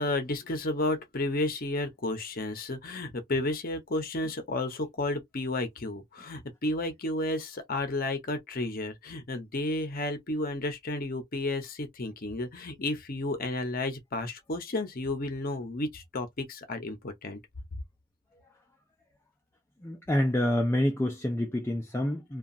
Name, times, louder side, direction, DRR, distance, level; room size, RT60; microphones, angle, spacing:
voice 1, 0.0-17.4, left 2 dB, 40° left, 0.7 m, -32 dB
voice 2, 19.8-22.4, left 1 dB, 10° left, 0.4 m, -27 dB
2.8 x 2.3 x 2.5 m
head